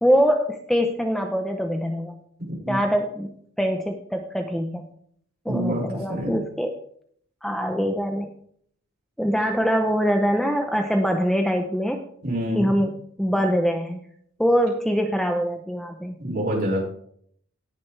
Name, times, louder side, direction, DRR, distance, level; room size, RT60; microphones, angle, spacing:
voice 1, 0.0-2.1 2.7-3.3 3.6-4.9 5.4-6.7 7.4-8.3 9.2-12.0 12.5-14.0 14.4-16.1, equal, ahead, 3 dB, 0.7 m, -23 dB
voice 2, 5.5-6.4 12.2-12.8 16.2-16.8, equal, 45° right, -3 dB, 5.6 m, -26 dB
18.5 x 6.8 x 3.3 m, 0.63 s
head